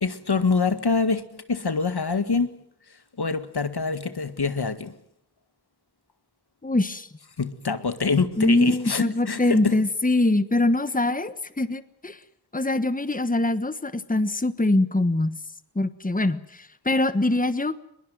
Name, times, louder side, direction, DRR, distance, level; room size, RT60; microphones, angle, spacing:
voice 1, 0.0-2.5 3.2-4.9 7.4-9.8, left 4 dB, 75° left, 1.9 m, -25 dB
voice 2, 6.6-7.1 8.4-12.2 12.5-15.3 15.7-17.8, left 2 dB, 20° left, 1.4 m, -23 dB
21.5 x 21.5 x 9.4 m
wide cardioid pair, 50°, 39 cm